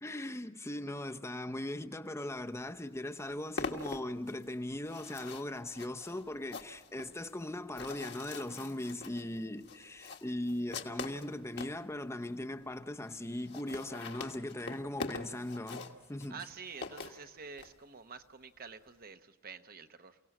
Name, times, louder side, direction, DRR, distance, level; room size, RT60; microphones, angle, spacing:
voice 1, 0.0-16.4, left 1 dB, 15° left, 0.8 m, -39 dB
sound 1, 2.6-2.7 2.9-11.8 12.4-12.5 12.7-12.8 13.0-13.1 13.3-17.7, left 4 dB, 55° left, 1.6 m, -44 dB
voice 2, 16.3-20.2, right 5 dB, 45° right, 1.1 m, -48 dB
29.5 x 17.5 x 6.1 m
head